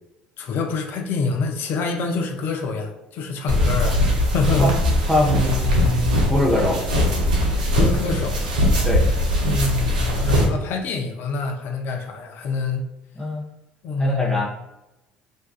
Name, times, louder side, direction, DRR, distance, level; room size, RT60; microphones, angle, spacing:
voice 1, 0.4-4.7 7.7-8.4 9.4-12.9 13.8-14.4, left 3 dB, 55° left, 4 dB, 0.4 m, -26 dB
sound 1, 3.5-10.5, left 1 dB, 85° right, 0.5 m, -20 dB
voice 2, 5.1-6.8 8.8-9.0 13.2-13.4 14.0-14.5, left 1 dB, 10° left, -5 dB, 0.6 m, -22 dB
2.6 x 2.2 x 2.3 m, 0.90 s
hypercardioid pair, 65°, 4 cm